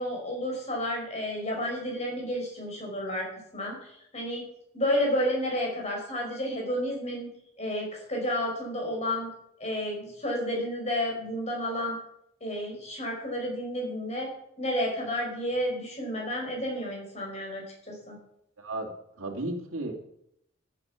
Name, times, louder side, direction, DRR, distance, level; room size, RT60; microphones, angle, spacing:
voice 1, 0.0-3.3 3.5-4.4 4.7-7.3 7.6-9.3 9.6-12.0 12.4-14.3 14.6-18.2, equal, 30° left, 0 dB, 5.1 m, -31 dB
voice 2, 18.6-18.9 19.2-19.9, right 2 dB, 90° right, 1 dB, 2.4 m, -33 dB
14.0 x 8.8 x 5.8 m, 0.75 s
head